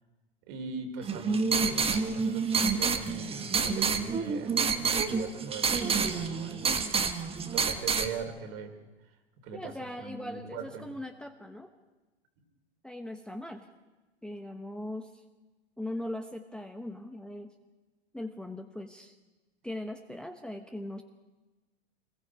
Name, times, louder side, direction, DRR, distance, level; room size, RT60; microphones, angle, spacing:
voice 1, 0.5-6.8 7.5-8.7 9.4-9.7 10.0-10.9, right 4 dB, 50° right, 4 dB, 3.8 m, -41 dB
sound 1, 1.0-8.1, right 5 dB, 20° right, 1.3 m, -28 dB
voice 2, 9.5-11.7 12.8-13.7 14.2-15.2 15.8-17.5 18.1-19.2 19.6-21.0, left 1 dB, 5° left, 5 dB, 1.1 m, -40 dB
26.5 x 21.0 x 4.8 m, 1.2 s
hypercardioid pair, 95°, 32 cm